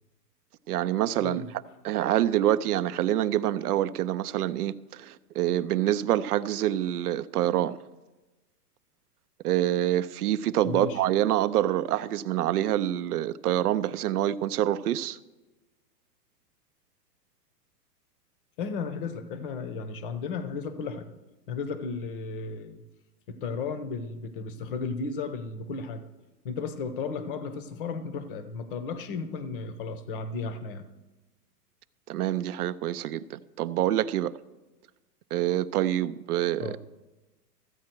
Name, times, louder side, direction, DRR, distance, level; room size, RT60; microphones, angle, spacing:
voice 1, 0.7-1.4 1.8-7.8 9.4-15.2 32.1-34.3 35.3-36.8, right 12 dB, 65° right, 0.6 m, -26 dB
voice 2, 10.6-11.0 18.6-21.1 21.5-22.8 23.3-26.1 26.4-30.9 36.6-36.8, left 4 dB, 35° left, 0.8 m, -34 dB
14.0 x 8.6 x 4.5 m
hypercardioid pair, 160°, 49 cm